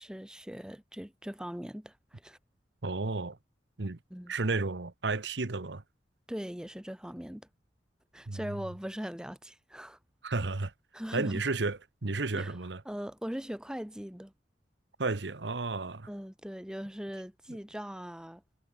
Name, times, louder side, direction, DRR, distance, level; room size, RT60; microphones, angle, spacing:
voice 1, 0.0-2.4 4.1-4.3 6.3-7.5 8.1-10.0 10.9-11.4 12.3-12.6 12.9-14.3 16.1-18.4, equal, 5° right, 0.8 m, -40 dB
voice 2, 2.8-3.4 3.8-4.0 4.3-5.8 8.3-8.5 10.2-10.7 11.1-12.8 15.0-16.1, right 3 dB, 75° right, 1.1 m, -32 dB
head